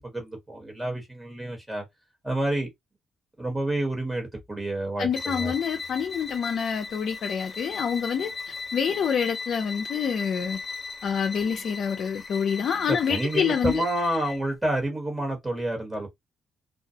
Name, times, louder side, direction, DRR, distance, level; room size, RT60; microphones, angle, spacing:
voice 1, 0.0-1.8 2.2-2.7 3.4-5.5 12.9-16.1, right 1 dB, 15° right, 1.2 m, -29 dB
voice 2, 5.0-10.6 11.0-13.8, left 7 dB, 65° left, 0.4 m, -27 dB
sound 1, 5.1-14.5, left 4 dB, 30° left, 1.0 m, -37 dB
2.3 x 2.1 x 2.7 m
cardioid pair, 100°, 0 cm